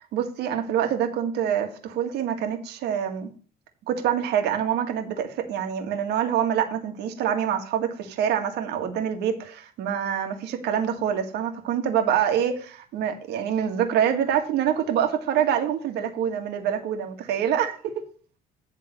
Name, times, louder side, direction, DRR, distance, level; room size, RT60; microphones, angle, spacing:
voice 1, 0.1-3.3 3.9-17.9, right 9 dB, 80° right, 1.7 m, -26 dB
10.5 x 3.7 x 6.5 m
cardioid pair, 110°, 17 cm